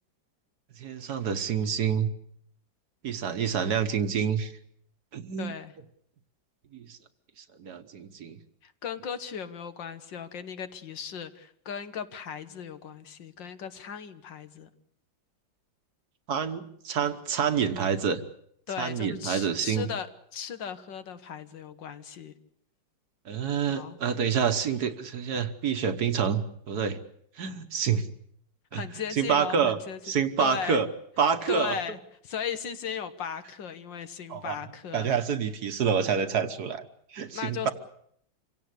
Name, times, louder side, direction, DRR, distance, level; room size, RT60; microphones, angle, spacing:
voice 1, 0.8-2.1 3.0-4.5 5.1-5.5 6.7-7.0 7.6-8.4 16.3-18.2 18.8-19.9 23.3-27.0 27.4-28.1 28.7-28.8 29.1-29.8 30.0-30.9 31.2-31.7 34.3-34.6 34.9-36.8 37.1-37.7, right 7 dB, 60° right, 10 dB, 1.6 m, -27 dB
voice 2, 5.4-5.7 8.6-14.7 18.7-22.3 23.7-24.0 28.7-30.0 30.4-30.8 31.5-32.0 32.2-35.1 37.3-37.7, left 7 dB, 75° left, 10 dB, 2.0 m, -36 dB
26.5 x 17.0 x 8.2 m, 0.70 s
omnidirectional pair, 2.0 m